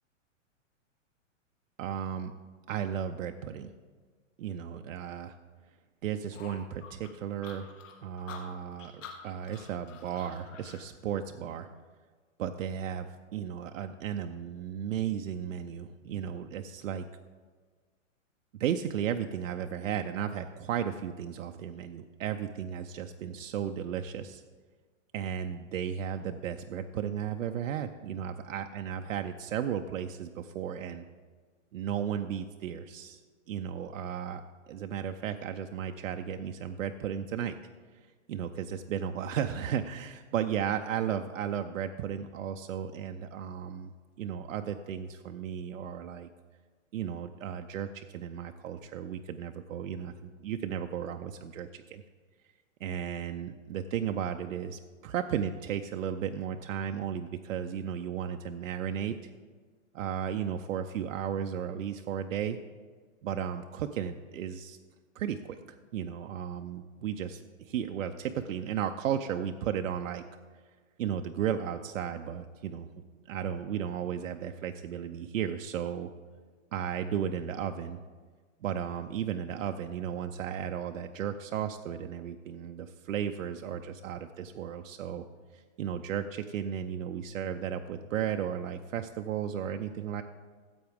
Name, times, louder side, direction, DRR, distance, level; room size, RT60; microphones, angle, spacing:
voice 1, 1.8-2.3 2.7-3.7 4.4-5.4 6.0-7.7 8.0-11.7 12.4-17.0 18.6-24.4 25.1-31.1 31.7-33.2 33.5-34.4 34.7-37.6 38.3-43.9 44.2-46.3 46.9-52.0 52.8-59.1 59.9-62.6 63.2-64.8 65.2-65.6 65.9-70.2 71.0-72.9 73.3-76.1 76.7-78.0 78.6-85.3 85.5-90.2, right 9 dB, 80° right, 6 dB, 0.6 m, -34 dB
sound 1, 6.3-10.8, left 6 dB, 70° left, 1.9 m, -48 dB
14.5 x 7.9 x 3.5 m, 1.5 s
hypercardioid pair, 180°, 39 cm